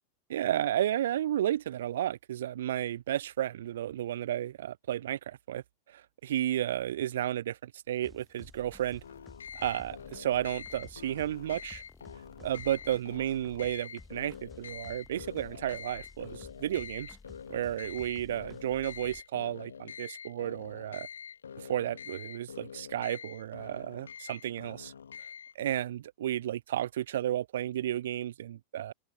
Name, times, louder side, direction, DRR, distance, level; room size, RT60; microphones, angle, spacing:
voice 1, 0.3-9.0 9.5-11.8 12.4-17.2 17.5-21.1 21.6-24.9 25.6-28.9, right 12 dB, 60° right, 0.4 m, -33 dB
sound 1, 8.0-19.2, left 4 dB, 10° left, 1.2 m, -53 dB
sound 2, 9.0-25.6, left 7 dB, 70° left, 2.0 m, -46 dB
figure-of-eight pair, 90°, 0 cm